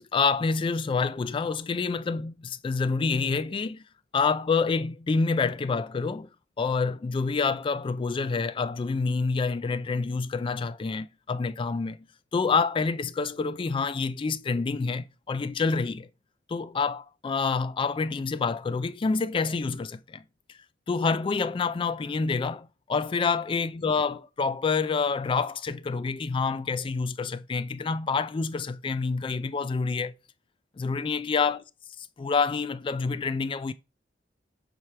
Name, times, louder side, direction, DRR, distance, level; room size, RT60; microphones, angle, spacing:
voice 1, 0.0-3.8 4.1-6.3 6.6-12.0 12.3-16.1 16.5-20.2 20.5-20.6 20.9-30.1 30.8-31.6 32.2-33.7, left 4 dB, 30° left, 0.3 m, -27 dB
7.6 x 3.3 x 5.7 m
head